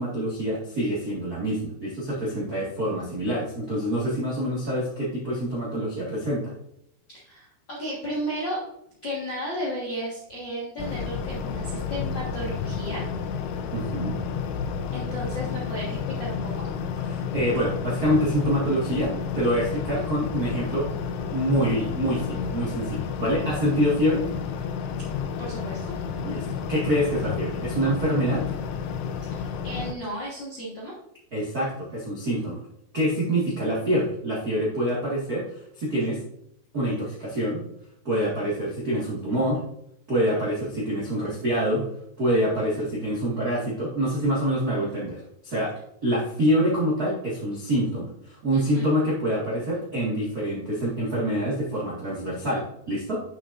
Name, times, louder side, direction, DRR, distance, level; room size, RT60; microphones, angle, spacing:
voice 1, 0.0-6.5 13.7-14.2 17.1-20.9 21.3-24.2 26.2-26.4 26.7-28.5 31.3-32.6 32.9-36.2 36.7-37.6 38.0-39.6 40.1-41.8 42.2-45.7 46.0-53.2, equal, 80° right, -7 dB, 0.8 m, -26 dB
voice 2, 7.1-8.6 9.0-13.0 14.9-16.5 25.4-25.8 29.3-30.9 48.5-48.9, equal, 65° left, -7 dB, 1.1 m, -34 dB
sound 1, 10.8-29.9, left 6 dB, 80° left, 2.8 m, -31 dB
8.1 x 6.9 x 2.6 m, 0.76 s
omnidirectional pair, 5.0 m